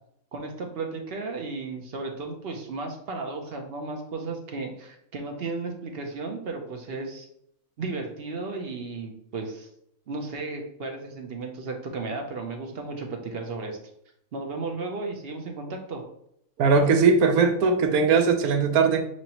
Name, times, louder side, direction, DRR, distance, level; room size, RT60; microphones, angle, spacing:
voice 1, 0.3-7.3 7.8-9.7 10.1-13.8 14.3-16.0, right 3 dB, 55° right, 3 dB, 0.7 m, -34 dB
voice 2, 16.6-19.0, right 5 dB, 75° right, 7 dB, 1.1 m, -20 dB
6.2 x 2.9 x 2.9 m, 0.73 s
omnidirectional pair, 1.6 m